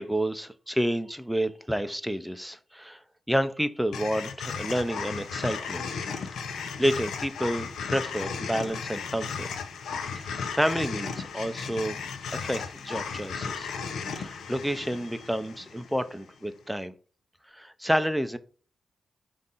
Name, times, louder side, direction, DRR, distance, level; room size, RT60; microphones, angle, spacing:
voice 1, 0.0-3.0 3.3-5.9 6.5-9.5 10.2-12.0 12.3-13.7 14.1-16.9 17.5-18.4, equal, ahead, 0.5 m, -29 dB
sound 1, 3.9-16.2, left 5 dB, 90° left, 0.6 m, -35 dB
5.1 x 2.5 x 4.1 m
cardioid pair, 70°, 0 cm